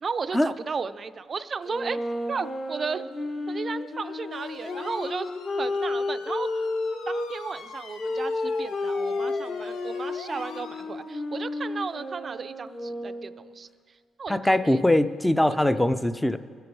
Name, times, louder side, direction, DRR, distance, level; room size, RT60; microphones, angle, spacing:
voice 1, 0.0-3.1 3.5-5.3 5.6-6.6 7.1-13.7 14.2-14.8 15.5-15.6, right 5 dB, 40° right, 12 dB, 0.5 m, -34 dB
sound 1, 1.6-7.3 8.0-13.5, left 2 dB, 45° left, 1.4 m, -31 dB
sound 2, 4.3-10.8, left 4 dB, 85° left, 0.9 m, -43 dB
voice 2, 14.3-16.4, left 1 dB, 10° left, 12 dB, 0.5 m, -22 dB
22.5 x 8.0 x 4.7 m, 2.2 s
cardioid pair, 90°, 0 cm